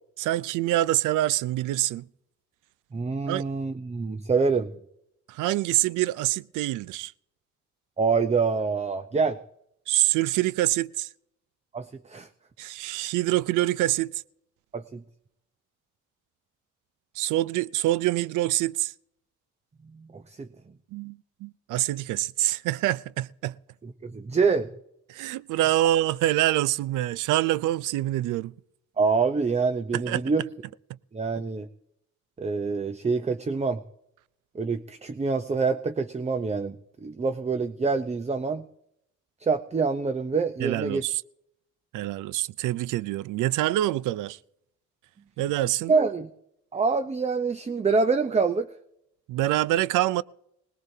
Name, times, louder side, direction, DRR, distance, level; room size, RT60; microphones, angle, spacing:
voice 1, 0.2-2.1 3.3-3.4 5.3-7.1 9.9-11.1 12.6-14.2 17.2-18.9 20.9-23.6 25.1-28.5 29.9-30.2 40.6-41.2 41.9-44.4 45.4-45.9 49.3-50.2, right 15 dB, 85° right, 0.5 m, -25 dB
voice 2, 2.9-4.7 8.0-9.4 11.7-12.3 14.7-15.0 19.9-20.5 23.8-24.7 29.0-30.4 31.1-31.7 32.4-33.8 34.5-38.7 39.4-41.0 45.9-46.3 46.7-48.7, right 4 dB, 20° right, 0.7 m, -26 dB
21.0 x 19.5 x 2.8 m
cardioid pair, 90°, 30 cm